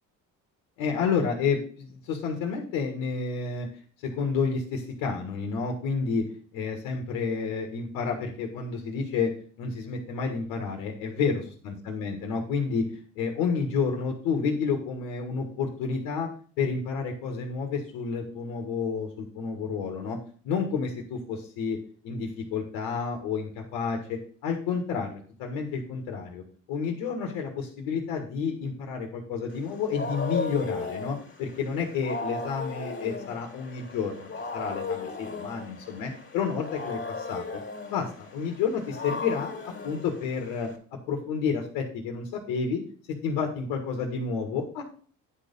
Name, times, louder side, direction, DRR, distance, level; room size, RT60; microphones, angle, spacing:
voice 1, 0.8-3.7 4.0-6.2 6.5-9.3 9.6-12.9 13.2-16.3 16.6-20.2 20.4-21.8 22.0-37.6 37.9-39.6 39.8-40.7 41.1-42.8 43.2-44.8, left 5 dB, 85° left, 3 dB, 1.8 m, -30 dB
Wild animals, 29.5-40.8, left 4 dB, 35° left, 2.3 m, -36 dB
9.7 x 4.6 x 5.4 m, 0.43 s
supercardioid pair, 80°, 33 cm